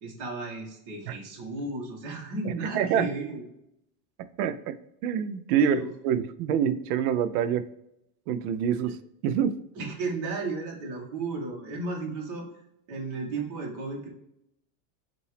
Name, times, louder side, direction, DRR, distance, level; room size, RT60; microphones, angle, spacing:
voice 1, 0.0-3.4 5.6-5.9 9.7-12.4 12.9-14.1, right 3 dB, 45° right, 0 dB, 1.4 m, -34 dB
voice 2, 2.4-3.1 4.4-4.8 5.0-7.7 8.3-9.0 9.2-9.6, right 8 dB, 80° right, 12 dB, 0.6 m, -26 dB
5.4 x 2.7 x 3.3 m, 0.78 s
supercardioid pair, 150°, 44 cm